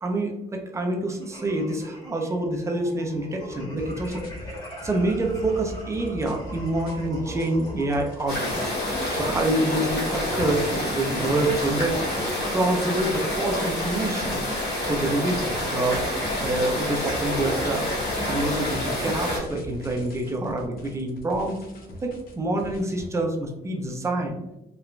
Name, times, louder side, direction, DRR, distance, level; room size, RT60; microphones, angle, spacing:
voice 1, 0.0-4.2 4.8-8.6 9.1-12.0 12.5-14.4 14.8-15.4 15.7-16.0 16.4-21.6 22.0-24.4, right 2 dB, 15° right, 2 dB, 0.4 m, -26 dB
sound 1, 1.2-9.8, left 1 dB, 25° left, 1.0 m, -42 dB
sound 2, 3.8-23.1, left 1 dB, 60° left, 0.5 m, -41 dB
sound 3, 8.3-19.4, left 1 dB, 75° left, 1.4 m, -28 dB
3.0 x 2.1 x 2.3 m, 0.88 s
cardioid pair, 150°, 17 cm